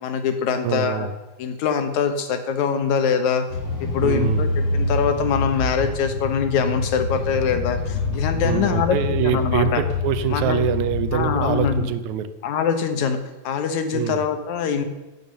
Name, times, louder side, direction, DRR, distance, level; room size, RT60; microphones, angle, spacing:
voice 1, 0.0-1.1 1.4-3.5 3.8-4.5 4.7-9.0 9.2-9.8 10.3-10.6 11.1-11.9 12.4-13.2 13.4-14.9, left 6 dB, 70° left, 8 dB, 2.6 m, -23 dB
voice 2, 0.6-1.1 4.0-4.4 8.4-12.3 13.9-14.2, right 9 dB, 75° right, 12 dB, 2.1 m, -24 dB
sound 1, 3.5-11.8, left 3 dB, 45° left, 3.3 m, -26 dB
16.0 x 7.1 x 6.8 m, 1.1 s
omnidirectional pair, 3.5 m